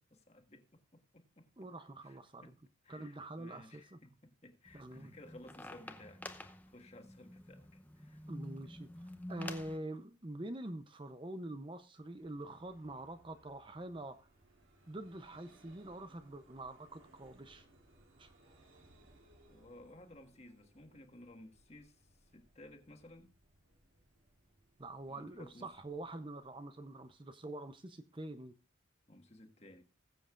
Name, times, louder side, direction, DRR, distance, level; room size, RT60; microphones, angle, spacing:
voice 1, 0.0-1.7 2.0-2.5 2.8-8.2 8.6-8.7 19.5-23.3 25.1-25.7 29.1-29.8, left 1 dB, 35° left, 5 dB, 1.6 m, -57 dB
voice 2, 1.6-2.5 2.9-4.0 4.7-5.1 8.3-8.9 9.3-14.3 14.9-17.6 18.2-18.3 24.8-28.5, right 1 dB, 25° right, 9 dB, 0.6 m, -45 dB
sound 1, 4.6-9.8, left 1 dB, 10° left, 0.7 m, -49 dB
Vehicle, 11.9-27.4, right 1 dB, 85° right, 3.1 m, -67 dB
20.0 x 7.8 x 2.5 m, 0.31 s
head